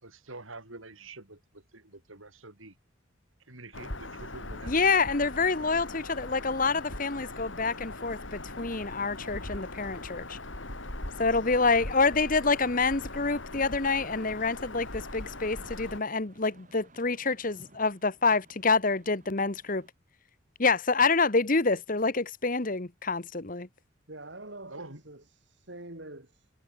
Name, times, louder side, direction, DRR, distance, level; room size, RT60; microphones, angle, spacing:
voice 1, 0.0-2.7 3.5-4.7 24.7-25.0, right 2 dB, 85° right, 6.6 m, -46 dB
Bird vocalization bird call bird song, 3.7-16.0, left 2 dB, 70° left, 5.7 m, -40 dB
voice 2, 4.7-10.4 11.2-19.9 20.6-23.7, left 4 dB, 40° left, 1.3 m, -27 dB
sound 1, 14.9-19.9, right 2 dB, 40° right, 6.9 m, -59 dB
voice 3, 24.1-26.5, right 2 dB, 60° right, 3.3 m, -45 dB
head